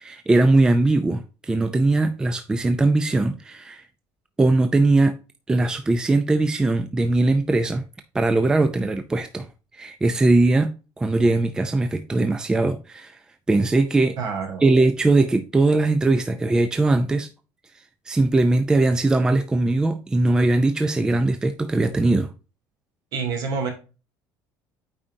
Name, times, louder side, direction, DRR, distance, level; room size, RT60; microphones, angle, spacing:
voice 1, 0.0-3.8 4.4-5.2 5.5-7.9 8.1-9.5 9.7-13.2 13.5-14.2 14.6-17.3 17.7-22.3, right 2 dB, 10° right, 0.4 m, -20 dB
voice 2, 14.2-14.7 23.1-23.7, right 5 dB, 55° right, 2.7 m, -27 dB
8.7 x 4.9 x 2.7 m
cardioid pair, 170°, 8 cm